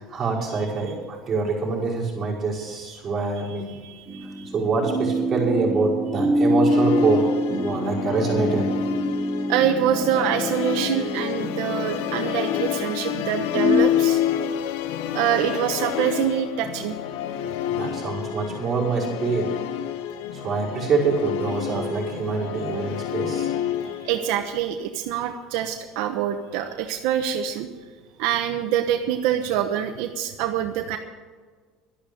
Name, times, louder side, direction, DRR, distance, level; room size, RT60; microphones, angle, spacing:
voice 1, 0.0-3.8 4.5-7.3 7.5-8.7 17.4-19.5 20.3-23.5, right 4 dB, 20° right, -6 dB, 5.5 m, -25 dB
voice 2, 3.7-4.5 9.5-14.2 15.1-16.9 21.8-21.9 23.8-27.7 28.2-31.0, right 10 dB, 70° right, 5 dB, 1.0 m, -25 dB
sound 1, 4.1-13.7, equal, 5° left, 3.4 m, -26 dB
Musical instrument, 6.7-24.3, left 11 dB, 80° left, 0.8 m, -28 dB
12.0 x 11.5 x 7.0 m, 1.5 s
cardioid pair, 150°, 0 cm